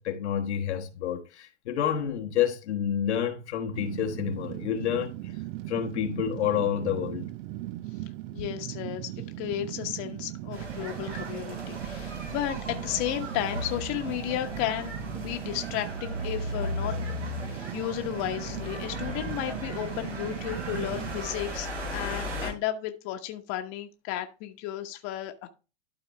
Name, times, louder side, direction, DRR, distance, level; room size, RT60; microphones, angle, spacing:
voice 1, 0.0-5.1 5.7-7.3, left 9 dB, 65° left, 1.3 m, -29 dB
Fire, 3.7-21.2, right 16 dB, 40° right, 0.5 m, -38 dB
voice 2, 8.3-9.1 9.4-16.9 17.5-25.5, left 12 dB, 40° left, 1.2 m, -33 dB
sound 1, 10.5-22.5, equal, 85° right, 3.7 m, -36 dB
12.5 x 4.2 x 3.2 m
hypercardioid pair, 105°, 36 cm